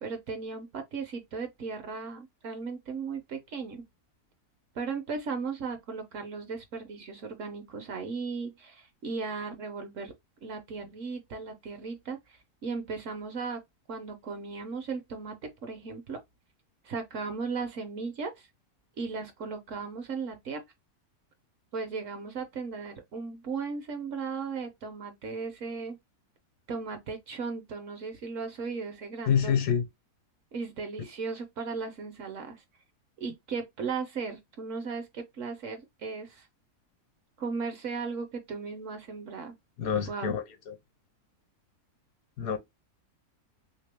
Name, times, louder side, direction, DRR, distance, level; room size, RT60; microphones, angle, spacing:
voice 1, 0.0-3.8 4.7-10.1 10.4-13.6 13.9-15.3 15.6-16.2 16.8-18.5 19.0-20.6 21.7-26.0 26.7-29.5 30.5-32.6 33.2-36.5 37.4-39.5 40.1-40.3, right 4 dB, 60° right, 0.9 m, -36 dB
voice 2, 29.3-29.8 39.8-40.8 42.4-42.6, left 7 dB, 70° left, 1.1 m, -27 dB
3.3 x 2.9 x 3.3 m
omnidirectional pair, 1.7 m